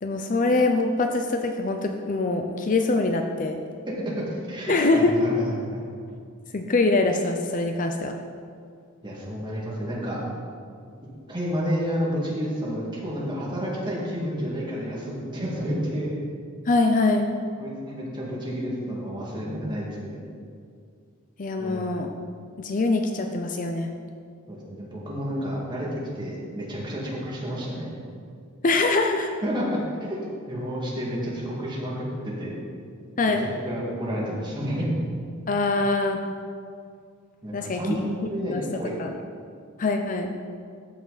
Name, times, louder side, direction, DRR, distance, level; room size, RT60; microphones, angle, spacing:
voice 1, 0.0-3.6 4.7-5.1 6.5-8.1 16.7-17.3 21.4-22.1 22.6-23.9 28.6-29.3 33.2-33.4 35.5-36.2 37.5-37.8 38.4-38.6 39.0-39.1 39.8-40.3, left 3 dB, 40° left, 4 dB, 0.5 m, -23 dB
voice 2, 3.9-5.8 9.0-10.2 11.3-16.1 17.6-20.2 21.6-21.8 24.5-27.9 29.4-30.2 30.5-32.6 33.3-34.9 37.4-38.0 38.3-39.0, equal, 20° right, -5 dB, 2.1 m, -30 dB
13.5 x 6.0 x 4.1 m, 2.2 s
head